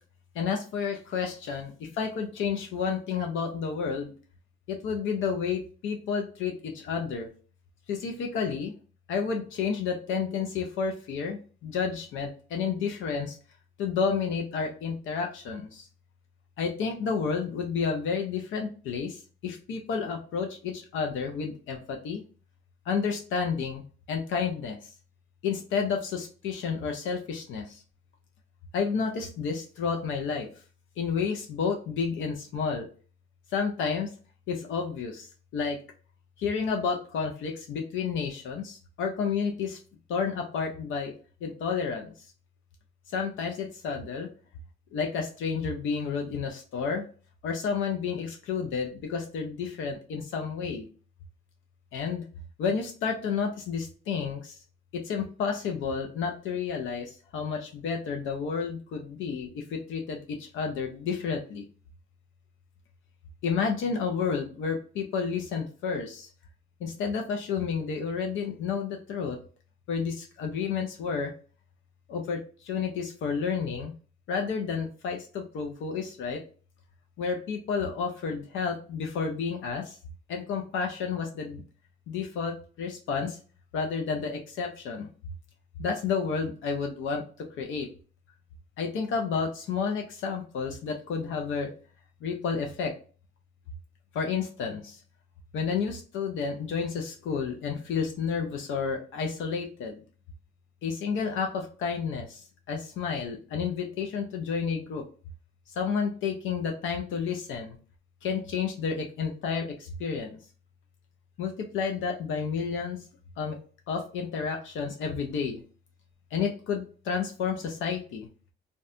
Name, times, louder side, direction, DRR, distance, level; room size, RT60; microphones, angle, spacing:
voice 1, 0.4-1.7 2.0-4.1 4.7-7.3 7.9-8.7 9.1-13.3 13.8-15.7 16.6-19.1 19.4-22.2 22.9-23.8 24.1-24.8 25.4-27.6 28.7-30.5 31.0-32.9 33.5-34.1 34.5-35.3 35.5-35.8 36.4-39.8 40.1-41.1 41.4-42.1 43.1-44.3 44.9-47.0 47.4-50.9 51.9-52.2 52.6-54.5 54.9-57.0 57.3-60.2 60.5-61.6 63.4-66.3 66.8-69.4 69.9-71.3 72.1-72.4 72.7-73.9 74.3-76.4 77.2-79.8 80.3-81.6 82.1-83.4 83.7-85.1 85.8-87.2 87.6-87.9 88.8-91.7 92.2-92.9 94.2-94.9 95.5-100.0 100.8-102.3 102.7-105.0 105.8-107.8 108.2-109.7 110.0-110.3 111.4-113.0 113.4-113.6 113.9-115.6 116.3-118.3, left 6 dB, 80° left, 3 dB, 0.5 m, -30 dB
2.6 x 2.2 x 2.4 m, 0.38 s
cardioid pair, 90°, 20 cm